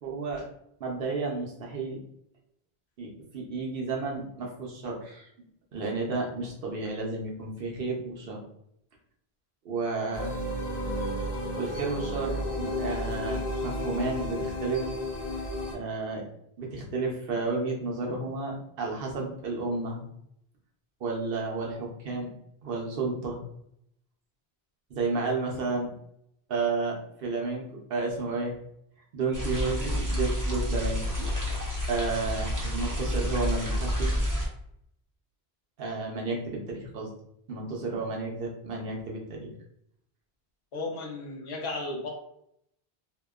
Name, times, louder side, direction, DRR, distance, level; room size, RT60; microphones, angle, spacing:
voice 1, 0.0-0.5 0.8-2.0 3.0-5.3 5.7-8.4 9.6-10.3 11.6-14.9 15.7-16.3 16.6-20.1 21.0-22.3 22.6-23.5 24.9-25.9 26.5-28.5 29.1-31.1 31.5-31.6 31.9-34.1 35.8-37.1 37.5-39.5, right 3 dB, 65° right, 0 dB, 0.8 m, -32 dB
sound 1, 10.1-15.7, left 1 dB, 50° left, 0.6 m, -32 dB
sound 2, 29.3-34.5, equal, 25° right, 0.5 m, -29 dB
voice 2, 40.7-42.1, left 2 dB, 85° left, -1 dB, 1.0 m, -34 dB
2.7 x 2.1 x 2.3 m, 0.73 s
omnidirectional pair, 1.1 m